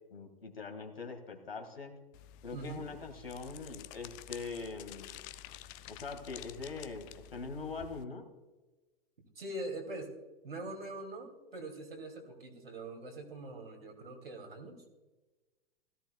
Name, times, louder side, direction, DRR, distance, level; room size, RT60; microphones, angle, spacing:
voice 1, 0.1-2.0 2.4-5.2 5.9-8.2, left 4 dB, 75° left, 5 dB, 1.9 m, -42 dB
sound 1, 2.1-8.0, left 12 dB, 20° left, 0.3 m, -50 dB
voice 2, 2.5-2.9 9.4-10.1 10.4-14.9, right 2 dB, 75° right, 3 dB, 2.6 m, -43 dB
16.5 x 14.0 x 2.3 m, 1.2 s
figure-of-eight pair, 100°, 29 cm